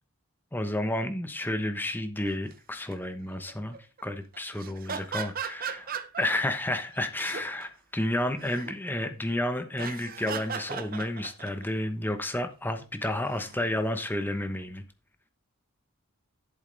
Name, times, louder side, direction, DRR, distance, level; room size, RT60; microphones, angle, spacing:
voice 1, 0.5-3.8 4.0-5.9 6.2-14.8, left 1 dB, 10° left, 0.9 m, -31 dB
sound 1, 2.3-2.5 2.9-3.1 3.5-4.0 4.3-6.5 6.9-7.6 8.1-8.7 9.7-11.7 13.1-13.7, right 6 dB, 40° right, 0.8 m, -37 dB
11.0 x 8.0 x 3.4 m
head